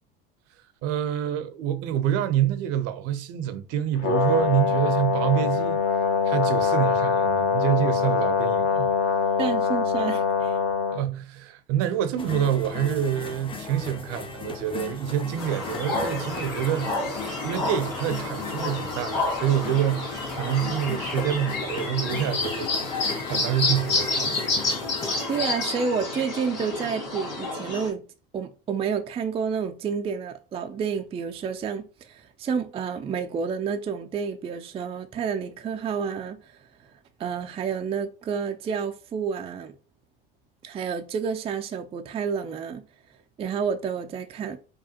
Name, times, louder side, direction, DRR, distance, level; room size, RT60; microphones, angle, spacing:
voice 1, 0.8-5.8 6.2-9.2 10.9-24.4, right 11 dB, 55° right, 0.6 m, -27 dB
Brass instrument, 4.0-11.0, left 6 dB, 50° left, 1.0 m, -23 dB
voice 2, 9.4-10.6 25.3-28.0 28.3-36.9 37.2-39.7 40.6-42.8 43.4-44.6, right 6 dB, 20° right, 0.4 m, -30 dB
sound 1, 12.2-25.5, left 4 dB, 20° left, 0.6 m, -37 dB
sound 2, 15.4-27.9, left 3 dB, 75° left, 1.9 m, -29 dB
4.9 x 2.3 x 2.8 m
hypercardioid pair, 85°, 29 cm